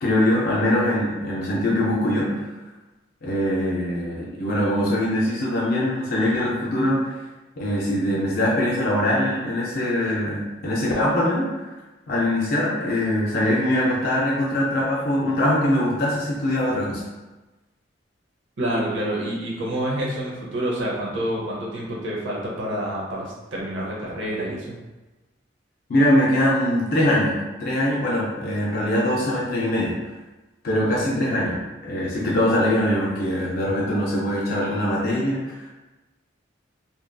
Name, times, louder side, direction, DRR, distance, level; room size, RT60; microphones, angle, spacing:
voice 1, 0.0-2.6 3.2-7.2 7.6-11.7 12.1-17.0 25.9-30.0 30.6-35.5, left 1 dB, 50° left, -4 dB, 0.4 m, -22 dB
voice 2, 18.6-24.8, right 1 dB, 70° right, -4 dB, 0.7 m, -28 dB
2.8 x 2.5 x 2.2 m, 1.1 s
head